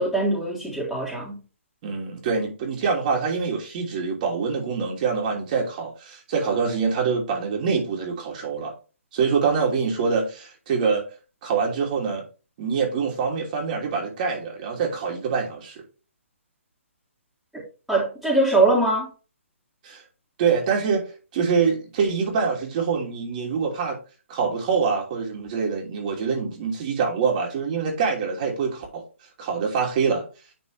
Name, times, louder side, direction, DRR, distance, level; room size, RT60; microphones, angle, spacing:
voice 1, 0.0-1.3 17.9-19.1, right 2 dB, ahead, 3.5 m, -22 dB
voice 2, 1.8-8.7 9.1-11.0 11.4-12.2 12.6-15.8 19.8-20.0 20.4-21.1 21.3-24.0 24.3-29.0 29.4-30.2, right 5 dB, 35° right, 2.9 m, -25 dB
10.5 x 4.8 x 3.4 m
hypercardioid pair, 145°, 7 cm